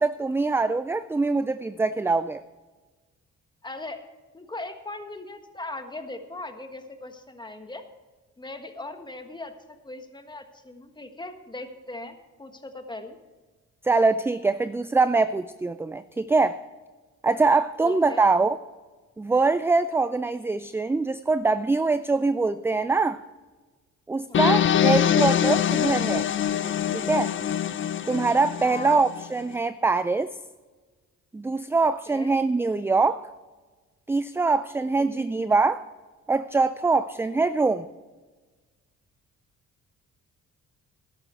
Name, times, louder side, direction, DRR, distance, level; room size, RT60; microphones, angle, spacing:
voice 1, 0.0-2.4 13.8-16.6 17.2-18.6 19.2-23.2 24.1-26.3 26.9-27.3 28.1-30.3 31.3-33.3 34.1-35.8 36.3-37.9, right 3 dB, 10° right, 13 dB, 0.3 m, -23 dB
voice 2, 3.6-7.8 8.4-13.2 17.8-18.3 24.3-24.6 28.6-29.1 32.1-32.4 35.0-35.3, left 2 dB, 15° left, 7 dB, 1.4 m, -39 dB
sound 1, 24.3-29.3, left 9 dB, 40° left, 0.6 m, -24 dB
13.0 x 11.0 x 4.4 m, 1.3 s
cardioid pair, 90°, 30 cm